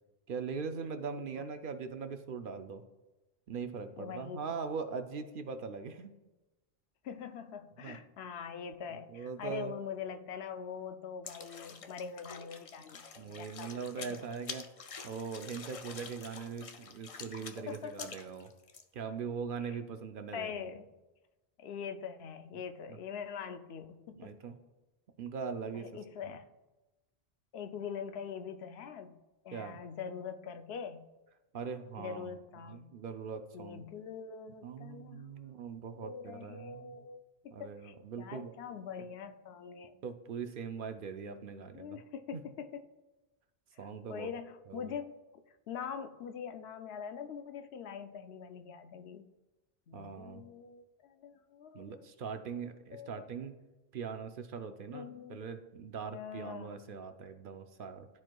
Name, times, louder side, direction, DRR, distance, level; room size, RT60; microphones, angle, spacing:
voice 1, 0.3-2.8 3.5-6.1 7.8-8.0 8.9-9.7 13.2-14.7 15.0-18.5 18.9-20.6 22.9-23.0 24.1-24.6 25.2-25.9 26.2-26.4 29.5-29.8 31.5-33.8 34.6-37.0 37.5-38.5 40.0-42.0 42.3-42.4 43.8-44.3 44.7-44.9 49.9-50.4 51.7-53.5 53.9-58.1, right 5 dB, 60° right, 8 dB, 0.7 m, -41 dB
voice 2, 4.0-4.7 7.0-14.1 17.7-18.1 19.6-19.8 20.3-20.8 21.6-24.4 25.7-26.4 27.5-29.2 29.4-31.0 32.0-32.9 33.5-35.6 36.0-40.0 41.7-42.8 43.7-45.1 45.7-49.3 49.9-52.4 52.9-53.2 54.9-55.4 56.1-57.0, left 7 dB, 75° left, 8 dB, 0.8 m, -43 dB
sound 1, 11.2-18.8, left 5 dB, 45° left, 0.4 m, -47 dB
12.5 x 4.5 x 2.2 m, 1.1 s
omnidirectional pair, 1.1 m